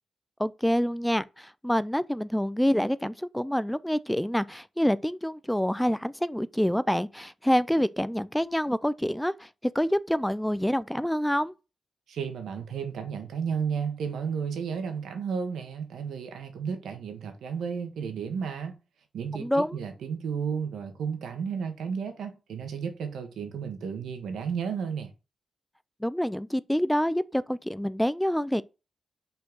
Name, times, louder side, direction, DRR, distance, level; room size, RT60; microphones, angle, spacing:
voice 1, 0.4-9.5 9.7-11.5 19.3-19.8 26.0-28.6, equal, 5° left, 0.4 m, -27 dB
voice 2, 12.1-18.8 19.1-25.1, right 6 dB, 90° right, 1.5 m, -33 dB
5.5 x 4.5 x 6.0 m
cardioid pair, 80°, 0 cm